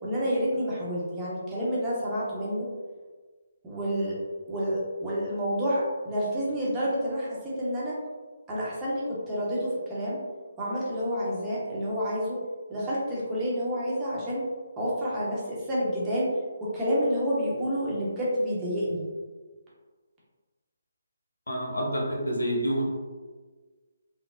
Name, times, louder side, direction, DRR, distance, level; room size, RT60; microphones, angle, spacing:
voice 1, 0.0-2.7 3.6-4.1 4.5-7.3 7.6-7.9 8.5-10.2 10.6-12.4 12.7-14.4 14.8-16.3 16.6-19.1, equal, 15° right, -7 dB, 0.8 m, -29 dB
voice 2, 21.5-23.0, equal, 80° left, -3 dB, 0.9 m, -28 dB
3.8 x 2.0 x 2.4 m, 1.4 s
figure-of-eight pair, 150°, 0 cm